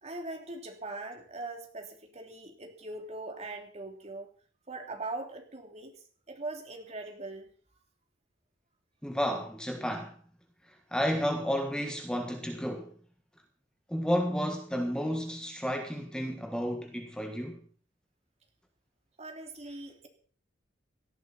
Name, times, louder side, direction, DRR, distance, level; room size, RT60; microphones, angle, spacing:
voice 1, 0.0-4.3 4.7-5.9 6.3-7.5 19.2-20.1, right 2 dB, 35° right, 3.1 m, -41 dB
voice 2, 9.0-10.1 10.9-12.9 13.9-17.6, equal, 5° left, 1.5 m, -31 dB
18.0 x 14.0 x 4.3 m
head